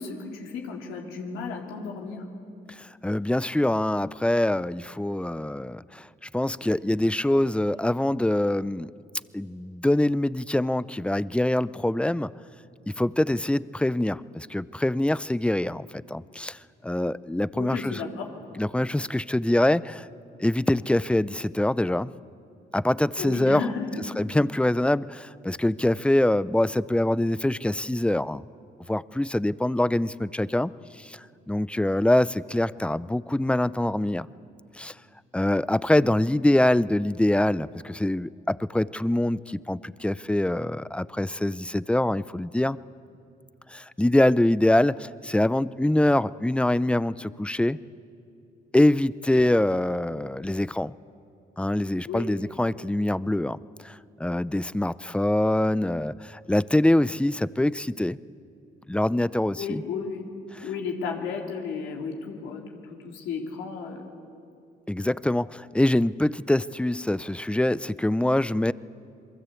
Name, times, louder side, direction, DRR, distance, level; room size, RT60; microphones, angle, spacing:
voice 1, 0.0-2.2 17.6-18.3 23.2-24.0 52.1-52.3 59.6-60.2 60.6-62.6 62.9-64.1, left 5 dB, 90° left, 1 dB, 3.5 m, -33 dB
voice 2, 2.8-6.1 6.3-8.9 9.3-12.3 12.9-16.6 16.8-18.0 18.6-20.1 20.4-22.1 22.7-23.6 24.2-28.4 28.9-30.7 31.0-31.2 31.5-34.3 34.8-34.9 35.3-42.8 43.7-47.8 48.7-50.9 51.6-53.6 53.8-58.2 58.9-59.8 60.5-60.7 64.9-68.7, left 1 dB, 5° left, 18 dB, 0.5 m, -24 dB
28.0 x 22.0 x 8.4 m, 2.5 s
cardioid pair, 90°, 20 cm